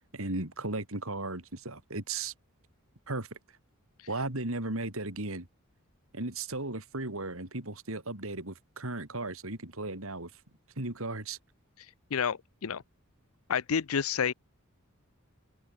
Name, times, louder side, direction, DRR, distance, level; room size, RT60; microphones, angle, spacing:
voice 1, 0.1-2.3 3.1-3.4 4.1-5.5 6.1-10.3 10.8-11.4, right 2 dB, 70° right, 4.1 m, -36 dB
voice 2, 11.8-12.8 13.5-14.3, left 7 dB, 70° left, 0.6 m, -30 dB
open air
head